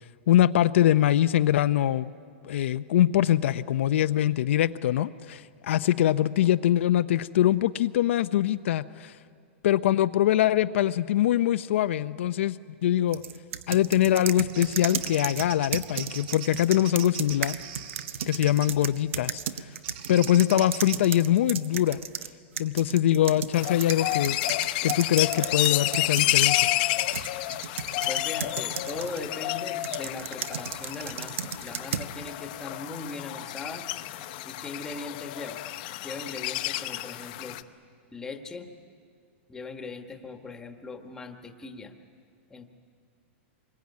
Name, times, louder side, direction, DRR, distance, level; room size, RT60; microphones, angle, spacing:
voice 1, 0.3-2.1 2.4-9.1 9.6-12.6 12.8-13.2 13.7-17.5 18.3-19.4 20.1-22.0 22.6-24.4 24.8-26.6, left 12 dB, 70° left, 11 dB, 0.6 m, -23 dB
sound 1, 13.1-22.3 22.6-29.2 29.8-32.1, right 8 dB, 80° right, 1.1 m, -35 dB
Bird vocalization bird call bird song, 14.3-18.8 19.8-21.0, right 9 dB, 50° right, 1.5 m, -42 dB
sound 2, 23.5-37.6, left 17 dB, 40° left, 0.8 m, -30 dB
voice 2, 28.0-33.9 34.4-35.6 36.0-37.7 38.1-38.7 39.5-41.9 42.5-42.7, left 3 dB, 10° left, 6 dB, 1.3 m, -39 dB
25.5 x 22.0 x 9.5 m, 2.2 s
supercardioid pair, 165°, 7 cm